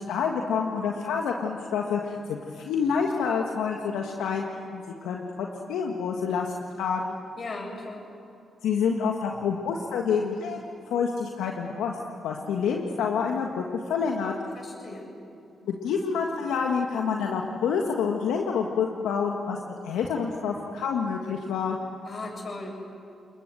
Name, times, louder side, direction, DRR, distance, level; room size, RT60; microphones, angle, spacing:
voice 1, 0.0-7.1 8.6-11.9 12.2-14.3 15.6-21.8, left 6 dB, 85° left, 1 dB, 1.6 m, -28 dB
voice 2, 7.4-8.1 14.5-15.1 22.1-22.7, left 2 dB, 50° left, 2 dB, 7.5 m, -37 dB
29.5 x 21.0 x 7.8 m, 2.6 s
supercardioid pair, 55°, 0 cm